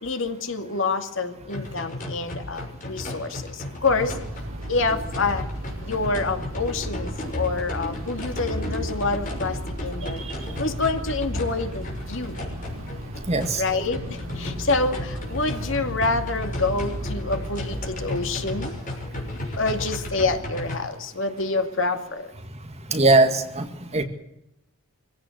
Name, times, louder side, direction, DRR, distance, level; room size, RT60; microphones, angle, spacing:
voice 1, 0.0-3.4 3.8-4.1 4.7-5.4 5.8-10.2 10.6-12.3 13.6-14.0 14.4-18.7 19.6-22.2, left 3 dB, 60° left, 6 dB, 2.4 m, -27 dB
sound 1, 1.5-20.8, left 1 dB, 40° left, 6.3 m, -34 dB
sound 2, 4.0-18.7, right 1 dB, 65° right, 2.9 m, -36 dB
voice 2, 13.3-13.6 22.9-24.0, right 2 dB, 30° right, 6 dB, 2.1 m, -20 dB
25.5 x 16.5 x 8.0 m, 0.87 s
head